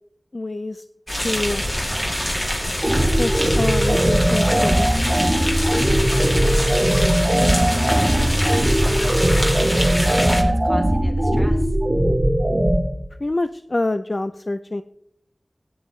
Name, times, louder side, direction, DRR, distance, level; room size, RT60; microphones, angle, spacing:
voice 1, 0.3-0.8 1.2-1.6 3.2-5.1 7.0-7.1 13.2-14.8, left 2 dB, 50° left, 10 dB, 0.4 m, -26 dB
sound 1, 1.1-10.4, equal, 25° left, 2.7 m, -24 dB
sound 2, 2.8-12.8, right 1 dB, 25° right, 1.8 m, -19 dB
voice 2, 6.1-11.8, equal, ahead, 0 dB, 3.2 m, -39 dB
16.5 x 10.0 x 3.2 m, 0.73 s
wide cardioid pair, 45°, 0 cm